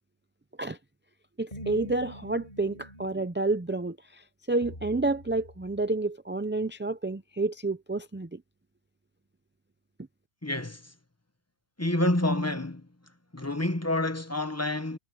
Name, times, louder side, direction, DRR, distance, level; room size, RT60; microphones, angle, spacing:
voice 1, 1.4-8.4, right 2 dB, 15° right, 0.4 m, -29 dB
sound 1, 1.5-3.2 4.6-5.9, equal, 40° left, 5.4 m, -45 dB
voice 2, 10.4-10.9 11.8-12.9 13.3-15.0, left 1 dB, 15° left, 1.1 m, -28 dB
omnidirectional pair, 1.1 m